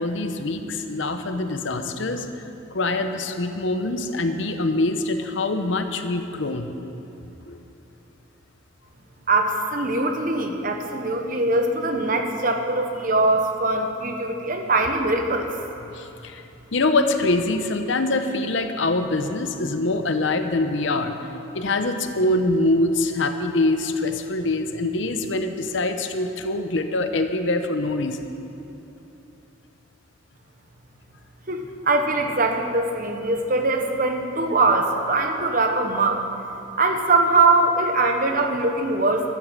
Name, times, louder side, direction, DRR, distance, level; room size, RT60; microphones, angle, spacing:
voice 1, 0.0-2.3 2.7-6.7 7.4-7.6 15.9-16.4 16.7-21.1 21.5-28.3, left 2 dB, 65° left, 7 dB, 0.8 m, -24 dB
voice 2, 9.3-15.5 31.5-36.3 36.8-39.3, right 2 dB, 40° right, 4 dB, 1.0 m, -22 dB
13.0 x 8.4 x 7.4 m, 3.0 s
head